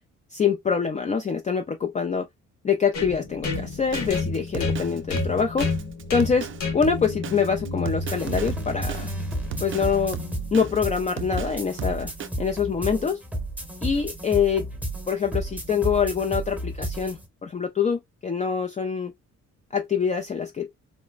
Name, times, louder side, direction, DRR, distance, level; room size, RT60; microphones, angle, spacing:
voice 1, 0.3-2.3 2.6-5.7 6.1-6.5 6.7-9.1 9.6-10.2 10.5-12.1 12.4-13.2 13.8-14.7 15.1-19.1 19.7-20.7, left 6 dB, 25° left, 0.4 m, -25 dB
sound 1, 2.9-10.7, left 3 dB, 75° left, 1.7 m, -31 dB
Drum kit, 3.5-12.3, right 6 dB, 45° right, 0.4 m, -36 dB
sound 2, 8.1-17.3, right 1 dB, 5° right, 1.0 m, -33 dB
3.1 x 2.1 x 2.3 m
cardioid pair, 90°, 30 cm